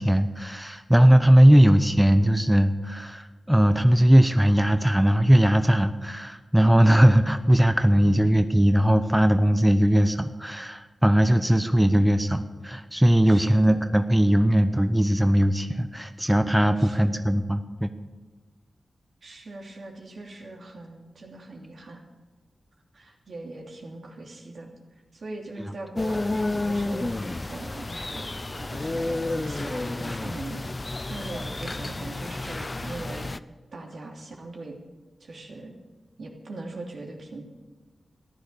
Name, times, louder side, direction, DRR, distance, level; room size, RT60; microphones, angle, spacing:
voice 1, 0.0-17.9, equal, 5° right, 9 dB, 0.8 m, -19 dB
voice 2, 1.5-1.9 11.3-11.8 13.2-13.9 16.8-17.2 19.2-22.0 22.9-24.7 25.1-33.4 33.7-34.8 35.2-35.8 36.2-37.4, right 2 dB, 75° right, 0 dB, 2.9 m, -41 dB
sound 1, 26.0-33.4, left 2 dB, 30° left, 0.5 m, -31 dB
14.5 x 10.5 x 6.8 m, 1.3 s
wide cardioid pair, 75°, 0 cm